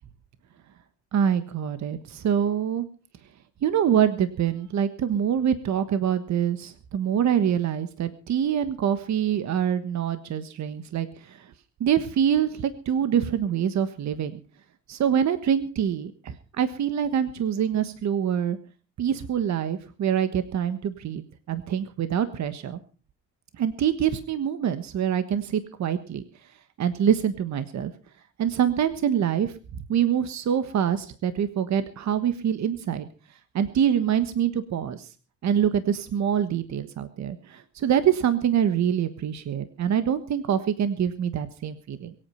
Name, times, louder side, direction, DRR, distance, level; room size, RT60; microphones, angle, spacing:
voice 1, 1.1-2.9 3.6-11.5 11.8-14.4 14.9-18.6 19.0-22.8 23.6-26.2 26.8-27.9 28.4-29.5 29.9-33.1 33.5-35.1 35.4-42.1, right 9 dB, 65° right, 11 dB, 1.4 m, -25 dB
23.0 x 8.9 x 5.7 m, 0.39 s
cardioid pair, 90°, 30 cm